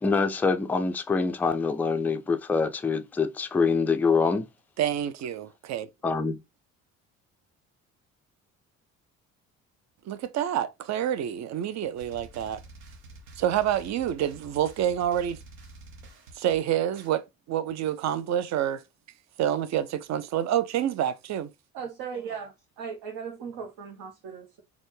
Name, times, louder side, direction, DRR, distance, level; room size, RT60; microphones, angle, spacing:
voice 1, 0.0-4.5 6.0-6.4, left 4 dB, 5° left, 0.3 m, -25 dB
voice 2, 4.8-5.9 10.1-12.6 13.4-15.4 16.3-18.8 19.4-21.5, right 10 dB, 40° right, 0.6 m, -28 dB
sound 1, 12.0-17.1, right 2 dB, 80° right, 1.0 m, -48 dB
voice 3, 21.7-22.5 22.8-24.6, right 6 dB, 60° right, 1.0 m, -37 dB
4.1 x 2.3 x 3.1 m
hypercardioid pair, 50°, 41 cm